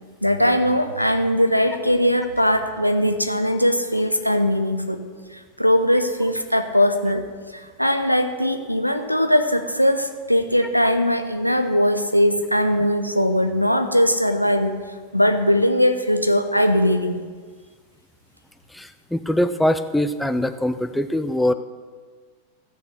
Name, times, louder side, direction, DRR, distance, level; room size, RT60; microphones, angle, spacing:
voice 1, 0.2-5.0 5.3-7.2 7.5-14.8 15.1-17.2, equal, 90° left, 7 dB, 0.8 m, -20 dB
voice 2, 19.1-21.5, left 1 dB, 5° left, 9 dB, 0.6 m, -22 dB
14.5 x 6.5 x 6.6 m, 1.5 s
figure-of-eight pair, 90°, 0 cm